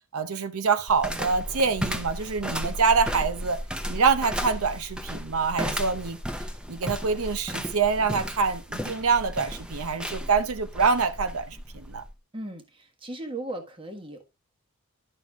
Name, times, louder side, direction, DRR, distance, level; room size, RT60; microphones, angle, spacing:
voice 1, 0.1-3.6 3.9-6.2 6.7-12.0, right 5 dB, 80° right, 0.7 m, -25 dB
sound 1, 0.9-12.1, equal, 5° right, 0.7 m, -34 dB
voice 2, 12.3-14.3, right 1 dB, 25° right, 1.4 m, -37 dB
11.0 x 6.2 x 3.5 m
head